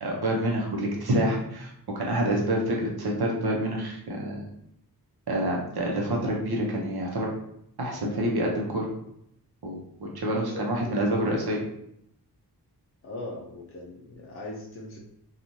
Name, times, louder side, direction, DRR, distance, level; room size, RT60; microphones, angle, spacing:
voice 1, 0.0-4.5 5.3-7.3 7.8-8.9 9.6-11.6, right 1 dB, 70° right, -1 dB, 0.8 m, -27 dB
voice 2, 10.4-11.3 13.0-15.0, left 2 dB, 35° left, -3 dB, 0.5 m, -40 dB
3.0 x 2.4 x 2.6 m, 0.76 s
wide cardioid pair, 120°, 40 cm